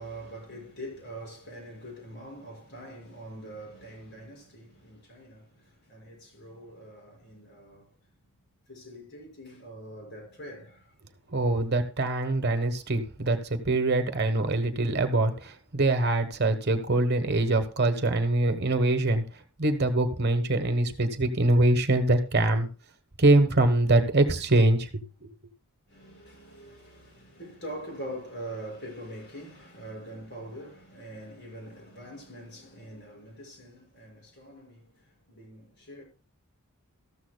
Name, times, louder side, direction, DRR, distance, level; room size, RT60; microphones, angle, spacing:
voice 1, 0.0-8.1 8.7-11.0 25.9-36.0, right 1 dB, 50° left, 5.7 m, -43 dB
voice 2, 11.3-19.2 19.6-22.7 23.2-24.9, right 2 dB, 50° right, 1.2 m, -24 dB
14.0 x 13.0 x 2.3 m
head